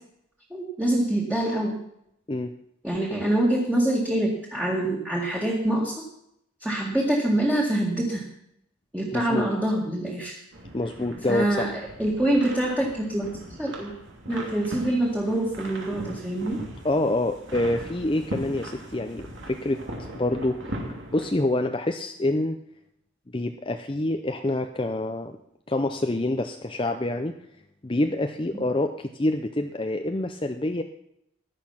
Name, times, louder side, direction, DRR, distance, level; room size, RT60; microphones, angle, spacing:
voice 1, 0.5-1.8 2.8-6.0 6.6-8.3 8.9-10.4 11.3-13.3 13.6-13.9 14.3-16.6, right 1 dB, 5° right, -4 dB, 2.1 m, -25 dB
voice 2, 9.1-9.5 10.7-11.7 16.8-19.8 20.1-20.6 21.1-22.6 23.3-25.4 25.7-27.4 27.8-30.8, left 1 dB, 25° left, 6 dB, 0.6 m, -26 dB
sound 1, 10.5-21.3, right 1 dB, 65° right, 3.0 m, -39 dB
15.5 x 11.0 x 5.8 m, 0.76 s
head